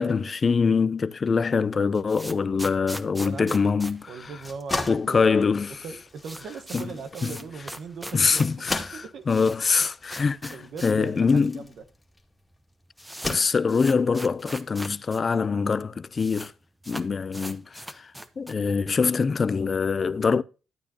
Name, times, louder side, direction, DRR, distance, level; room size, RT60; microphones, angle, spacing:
voice 1, 0.0-4.0 4.9-5.8 6.7-6.9 7.2-7.4 8.1-11.6 13.2-16.5 16.9-18.1 18.4-20.4, left 5 dB, 40° left, 0.6 m, -24 dB
sound 1, 1.7-4.9 5.2-5.3 5.5-5.6 5.9-11.1 11.4-11.5 12.2-12.3 12.5-15.2 15.5-15.6 15.8-16.5 16.8-18.7, right 1 dB, 10° right, 1.0 m, -40 dB
voice 2, 3.2-3.8 4.1-5.6 5.8-8.5 8.9-9.5 10.5-11.8, right 5 dB, 70° right, 1.2 m, -39 dB
sound 2, 4.2-12.3 13.0-14.0, left 2 dB, 15° left, 2.0 m, -36 dB
12.5 x 8.9 x 2.9 m
cardioid pair, 95°, 0 cm